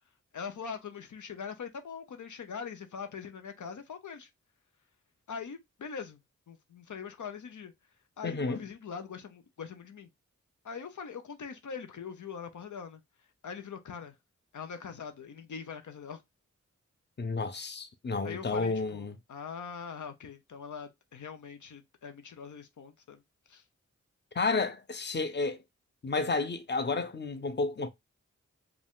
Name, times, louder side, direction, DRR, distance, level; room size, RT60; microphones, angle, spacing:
voice 1, 0.3-4.3 5.3-6.2 6.5-7.7 8.2-10.1 10.6-13.0 13.4-14.1 14.5-16.2 18.2-23.2 23.5-23.6, left 6 dB, 80° left, 0.7 m, -42 dB
voice 2, 8.2-8.6 17.2-19.1 24.3-25.6 26.0-27.9, left 3 dB, 35° left, 0.8 m, -31 dB
4.9 x 2.4 x 3.6 m
cardioid pair, 50°, 30 cm